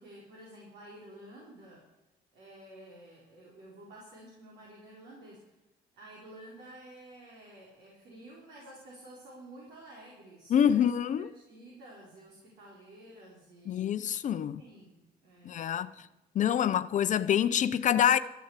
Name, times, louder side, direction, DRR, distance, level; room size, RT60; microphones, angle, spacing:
voice 1, 0.0-1.8 2.3-5.5 5.9-13.8 14.6-16.1, right 1 dB, 75° right, 4.7 m, -51 dB
voice 2, 10.5-11.3 13.7-14.6 15.5-15.9 16.3-18.2, left 9 dB, 45° left, 0.6 m, -26 dB
13.5 x 9.1 x 8.2 m
cardioid pair, 110°, 17 cm